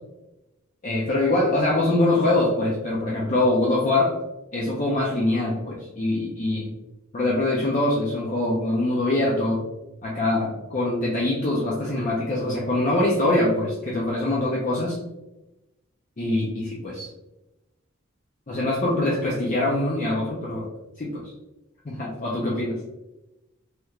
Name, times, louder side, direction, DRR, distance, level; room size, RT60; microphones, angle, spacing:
voice 1, 0.8-4.2 4.5-6.7 7.1-9.6 10.0-15.0 16.2-17.1 18.5-20.7 21.0-21.2 21.8-22.8, left 2 dB, 35° left, -4 dB, 0.5 m, -23 dB
3.2 x 3.0 x 2.3 m, 0.97 s
head